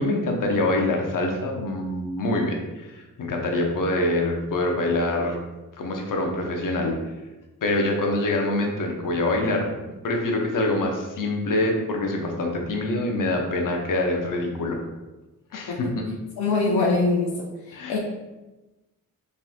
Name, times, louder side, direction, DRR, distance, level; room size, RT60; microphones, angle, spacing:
voice 1, 0.0-5.4 5.8-6.9 7.6-9.7 10.0-14.8 15.5-16.1 17.7-18.0, left 2 dB, 60° left, 1 dB, 0.9 m, -25 dB
voice 2, 16.4-17.3 17.7-18.0, left 3 dB, 85° left, -1 dB, 0.6 m, -23 dB
4.1 x 3.5 x 2.6 m, 1.1 s
supercardioid pair, 50°, 36 cm